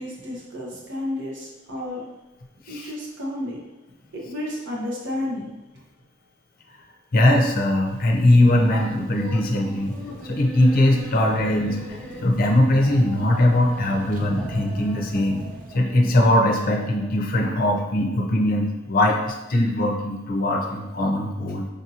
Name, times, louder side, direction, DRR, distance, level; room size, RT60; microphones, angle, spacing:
voice 1, 0.0-2.0 2.7-3.6 4.1-5.5, left 1 dB, 60° right, -4 dB, 1.0 m, -31 dB
voice 2, 7.1-10.0 10.2-15.4 15.7-21.7, left 1 dB, 45° left, 1 dB, 0.6 m, -20 dB
sound 1, 7.9-15.8, right 2 dB, 40° right, 0.4 m, -39 dB
sound 2, 8.5-17.4, left 1 dB, 5° left, 0.7 m, -40 dB
5.1 x 2.6 x 2.8 m, 1.0 s
head